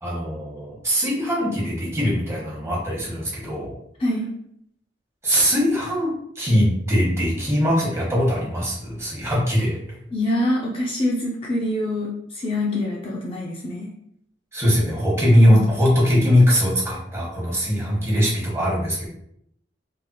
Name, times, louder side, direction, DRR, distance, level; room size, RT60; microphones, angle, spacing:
voice 1, 0.0-3.7 5.2-9.8 14.5-19.1, equal, 15° right, -5 dB, 1.1 m, -21 dB
voice 2, 4.0-4.3 10.1-13.9 15.4-15.6, left 1 dB, 30° left, -3 dB, 0.4 m, -25 dB
3.3 x 2.8 x 2.2 m, 0.73 s
head